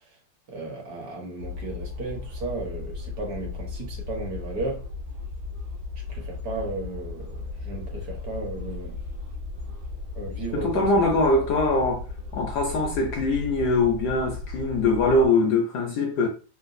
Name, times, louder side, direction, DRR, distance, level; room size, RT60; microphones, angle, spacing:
voice 1, 0.5-4.9 6.1-7.4 7.6-9.0 10.1-11.0, right 2 dB, 55° right, 1.3 m, -34 dB
sound 1, 1.4-15.3, left 4 dB, 90° right, 1.6 m, -36 dB
voice 2, 10.5-12.0 12.3-16.3, left 2 dB, 70° left, 1.0 m, -22 dB
3.8 x 2.3 x 2.5 m
omnidirectional pair, 2.2 m